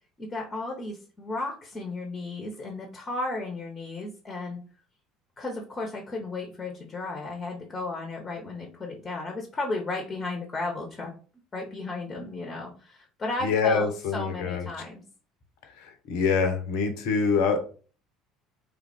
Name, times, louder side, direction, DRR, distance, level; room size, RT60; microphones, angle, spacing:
voice 1, 0.2-4.6 5.4-11.1 11.5-15.0, left 2 dB, 25° left, 1 dB, 0.8 m, -34 dB
voice 2, 13.4-14.7 15.8-17.7, left 5 dB, 60° left, 6 dB, 0.7 m, -25 dB
3.3 x 2.4 x 3.4 m, 0.39 s
figure-of-eight pair, 60°, 0 cm